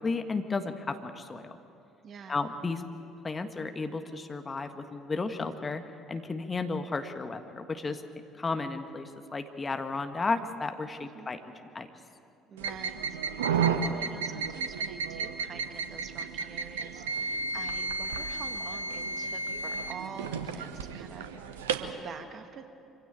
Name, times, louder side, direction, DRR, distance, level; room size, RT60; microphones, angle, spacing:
voice 1, 0.0-1.6 2.3-2.8 3.2-5.8 6.1-8.0 8.4-11.4 11.8-11.9, left 3 dB, 25° left, 7 dB, 1.6 m, -33 dB
voice 2, 2.0-2.4 11.0-11.3 12.5-22.7, right 6 dB, 45° right, 7 dB, 1.8 m, -46 dB
sound 1, 12.6-21.9, right 5 dB, 75° right, 1.0 m, -32 dB
25.5 x 16.5 x 9.0 m, 2.6 s
figure-of-eight pair, 55°, 0 cm